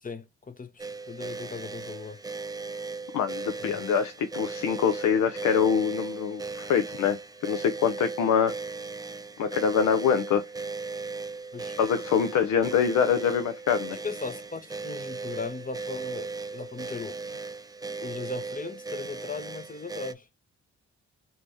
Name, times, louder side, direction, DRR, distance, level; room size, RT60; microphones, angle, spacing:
voice 1, 0.0-2.2 3.6-3.7 11.5-11.8 13.9-17.2 18.0-20.3, left 4 dB, 30° left, 0.8 m, -38 dB
sound 1, 0.8-20.1, right 4 dB, 15° right, 0.4 m, -37 dB
voice 2, 3.1-8.5 9.4-10.4 11.8-14.0, left 7 dB, 75° left, 0.6 m, -25 dB
3.0 x 2.8 x 3.3 m
supercardioid pair, 45°, 30 cm